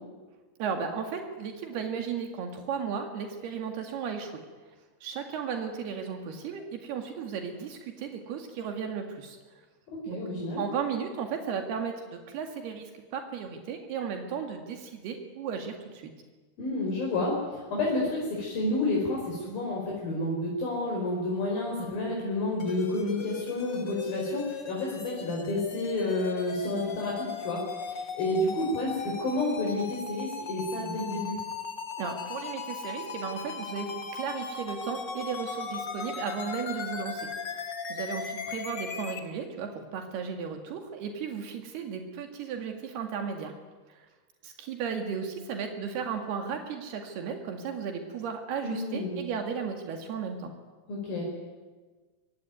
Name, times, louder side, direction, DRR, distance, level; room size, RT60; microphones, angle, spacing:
voice 1, 0.6-4.3 5.0-9.4 10.1-10.2 10.6-16.1 32.0-37.3 37.9-43.6 43.9-44.1 44.4-50.5, right 6 dB, 80° right, 4 dB, 4.1 m, -35 dB
voice 2, 10.1-10.6 16.6-31.4 48.6-49.2 50.9-51.2, left 2 dB, 65° left, -3 dB, 6.8 m, -30 dB
sound 1, 22.6-39.2, left 5 dB, 40° left, 1.7 m, -37 dB
24.5 x 24.5 x 9.4 m, 1.3 s
omnidirectional pair, 4.5 m